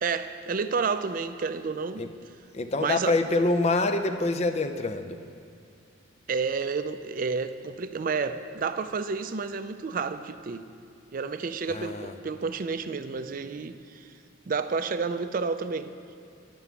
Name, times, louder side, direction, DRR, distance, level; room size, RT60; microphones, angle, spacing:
voice 1, 0.0-2.0 2.8-3.2 6.3-10.6 11.1-14.1 14.5-15.9, right 5 dB, 45° right, 11 dB, 0.4 m, -30 dB
voice 2, 2.5-5.2 11.7-12.1, left 2 dB, 35° left, 8 dB, 0.5 m, -26 dB
11.0 x 6.0 x 6.9 m, 2.3 s
head